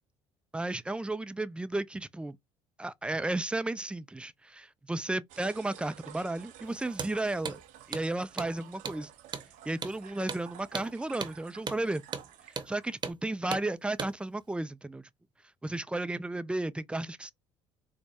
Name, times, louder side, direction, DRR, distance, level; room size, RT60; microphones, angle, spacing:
voice 1, 0.5-2.4 2.8-7.6 7.9-9.1 9.7-12.0 12.7-15.1 15.6-17.3, right 2 dB, 5° right, 0.4 m, -33 dB
sound 1, 5.3-13.1, right 11 dB, 55° right, 0.6 m, -52 dB
Hammer, 6.9-7.1 7.4-7.6 7.9-8.1 8.4-8.5 8.8-9.0 9.3-9.5 9.8-10.0 10.3-10.4 10.7-10.9 11.2-11.3 11.7-11.8 12.1-12.3 12.6-12.7 13.0-13.2 13.5-13.7 14.0-14.1, right 5 dB, 30° right, 0.9 m, -36 dB
4.3 x 2.1 x 2.8 m
figure-of-eight pair, 60°, 16 cm